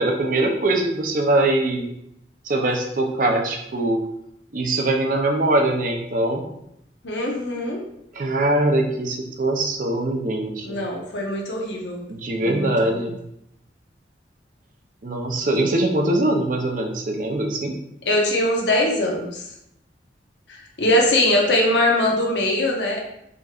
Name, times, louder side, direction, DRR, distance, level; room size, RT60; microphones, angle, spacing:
voice 1, 0.0-1.9 2.4-4.0 4.5-6.4 8.1-10.8 12.1-13.2 15.0-17.7, right 2 dB, 45° right, 2 dB, 0.6 m, -22 dB
voice 2, 7.0-7.8 10.6-12.0 12.4-13.0 15.6-15.7 18.0-19.4 20.5-23.0, left 1 dB, 80° left, -1 dB, 1.0 m, -22 dB
5.0 x 3.0 x 2.4 m, 0.78 s
head